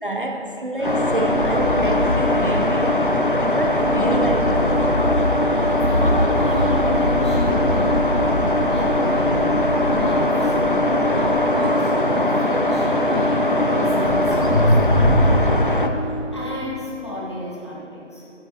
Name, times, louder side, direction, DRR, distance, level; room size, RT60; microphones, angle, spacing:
voice 1, 0.0-3.1 3.4-4.8, right 1 dB, 45° right, 1 dB, 0.5 m, -27 dB
sound 1, 0.8-15.4, left 1 dB, 65° left, 2.2 m, -22 dB
sound 2, 0.8-15.9, left 1 dB, 45° left, 0.5 m, -22 dB
voice 2, 5.6-8.3 8.6-9.5 9.9-10.6 11.1-14.8 16.3-18.3, left 1 dB, 20° left, -6 dB, 0.9 m, -32 dB
sound 3, 12.5-17.7, equal, 80° right, 2.0 m, -35 dB
13.0 x 8.3 x 2.7 m, 2.8 s
figure-of-eight pair, 170°, 38 cm